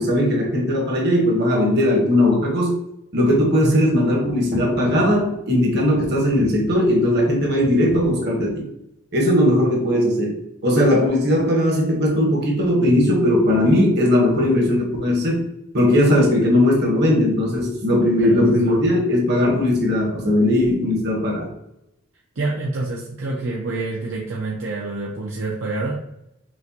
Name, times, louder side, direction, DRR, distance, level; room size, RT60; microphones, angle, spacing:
voice 1, 0.0-2.7 3.1-8.6 9.1-15.4 15.7-21.5, left 1 dB, 50° right, -1 dB, 1.2 m, -18 dB
voice 2, 22.4-25.9, right 2 dB, 70° right, -3 dB, 0.6 m, -27 dB
6.1 x 2.2 x 2.9 m, 0.81 s
head